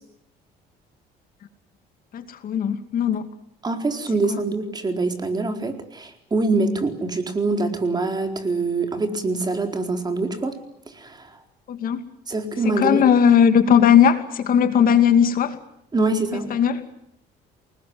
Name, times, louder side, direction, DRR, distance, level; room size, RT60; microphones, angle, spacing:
voice 1, 2.1-3.3 4.3-4.4 11.7-12.1 12.6-15.6 16.3-16.8, left 8 dB, 55° left, 8 dB, 2.5 m, -18 dB
voice 2, 3.6-10.5 11.0-11.3 12.3-13.0 15.9-16.5, right 3 dB, 25° right, 5 dB, 4.3 m, -24 dB
28.0 x 20.0 x 9.6 m, 0.76 s
cardioid pair, 110°, 17 cm